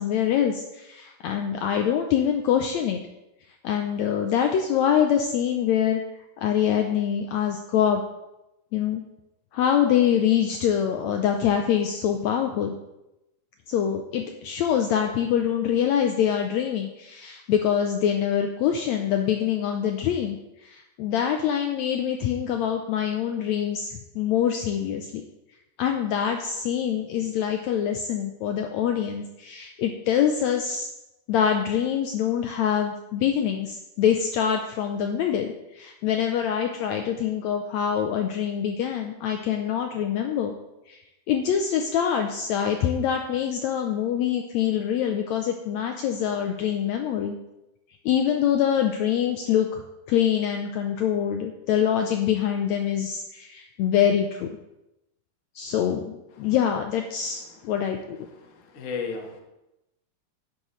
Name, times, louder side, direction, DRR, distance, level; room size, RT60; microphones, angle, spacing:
voice 1, 0.0-3.0 3.6-6.0 6.4-8.0 8.7-9.0 9.5-12.7 13.7-20.4 20.6-25.2 25.8-30.9 31.3-40.6 40.9-41.0 41.3-47.4 48.1-49.8 50.1-54.5 55.6-58.2, left 9 dB, 80° left, 4 dB, 1.7 m, -25 dB
voice 2, 58.7-59.4, left 5 dB, 50° left, 2 dB, 0.9 m, -32 dB
11.5 x 9.8 x 3.2 m, 0.93 s
omnidirectional pair, 3.8 m